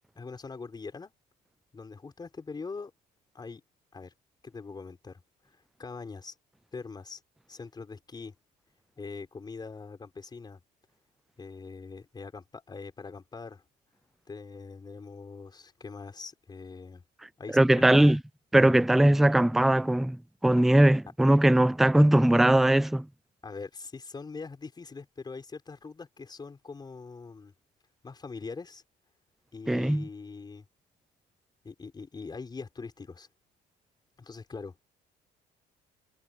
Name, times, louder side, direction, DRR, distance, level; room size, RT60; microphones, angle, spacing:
voice 1, 0.2-1.1 1.7-2.9 3.3-3.6 3.9-4.1 4.4-6.3 6.7-7.2 7.5-8.3 9.0-10.6 11.4-13.6 14.3-17.0 17.4-18.2 23.4-27.5 28.0-28.8 29.5-30.7 31.6-33.3 34.2-34.7, left 4 dB, 25° left, 5.0 m, -42 dB
voice 2, 17.5-18.2 18.5-20.2 20.4-23.1 29.7-30.0, right 1 dB, ahead, 0.4 m, -20 dB
cardioid pair, 110°, 17 cm